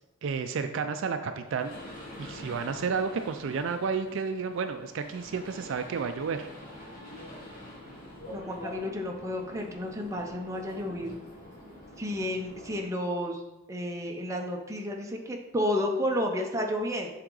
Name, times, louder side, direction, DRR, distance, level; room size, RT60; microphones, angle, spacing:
voice 1, 0.2-1.7 2.2-6.5, right 5 dB, 60° right, 8 dB, 0.4 m, -31 dB
sound 1, 1.5-12.8, left 1 dB, 40° left, 1.6 m, -46 dB
voice 2, 8.3-11.1 12.0-13.4 13.7-17.1, left 1 dB, 15° right, 1 dB, 0.6 m, -31 dB
7.7 x 3.6 x 3.8 m, 1.0 s
head